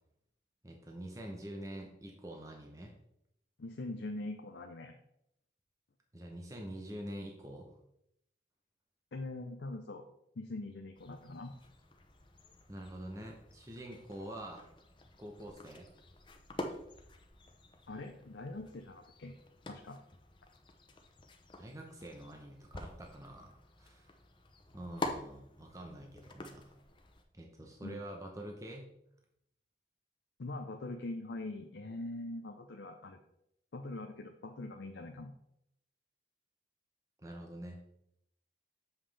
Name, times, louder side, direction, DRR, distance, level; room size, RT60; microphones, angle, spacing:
voice 1, 0.6-2.9 6.1-7.7 12.7-14.7 15.2-15.9 21.6-24.1 24.7-26.7 27.3-28.9 37.2-37.8, right 1 dB, 20° right, 1 dB, 0.8 m, -46 dB
voice 2, 3.6-5.0 9.1-10.1 10.4-11.5 17.9-19.3 19.7-20.0 27.8-28.0 30.4-33.2 33.7-35.3, left 2 dB, 75° left, 3 dB, 0.6 m, -43 dB
sound 1, 10.9-27.2, left 2 dB, 25° left, 0.6 m, -48 dB
7.2 x 5.6 x 3.3 m, 0.77 s
head